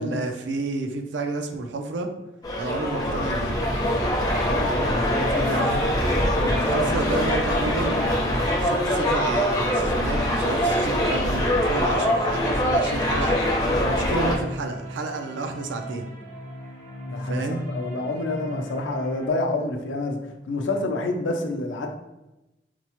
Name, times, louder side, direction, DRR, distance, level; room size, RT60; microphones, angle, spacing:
voice 1, 0.0-2.1 2.6-3.6 5.5-6.1 6.6-8.1 8.6-13.4 13.7-16.1 17.2-17.7, right 3 dB, 80° right, 5 dB, 0.4 m, -30 dB
sound 1, 2.4-14.4, equal, 20° left, 0.6 m, -23 dB
sound 2, 3.5-19.3, equal, 45° right, 0.9 m, -38 dB
voice 2, 4.4-5.7 5.9-6.1 6.3-6.7 17.1-20.2 20.5-21.9, left 2 dB, 85° left, 4 dB, 0.5 m, -28 dB
4.4 x 2.1 x 2.9 m, 0.97 s
head